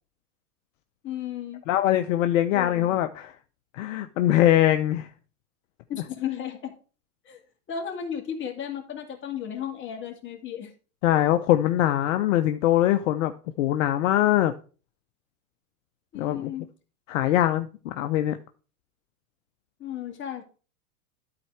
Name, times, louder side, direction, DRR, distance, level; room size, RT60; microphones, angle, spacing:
voice 1, 1.0-1.6 2.5-3.0 5.9-6.7 7.3-7.4 7.7-10.7 16.1-16.7 19.8-20.4, left 9 dB, 25° left, 2.2 m, -34 dB
voice 2, 1.7-3.3 3.7-5.1 11.0-13.3 13.6-14.5 16.1-16.5 17.1-18.4, left 13 dB, 55° left, 0.7 m, -22 dB
12.5 x 4.3 x 4.7 m
hypercardioid pair, 125°, 45 cm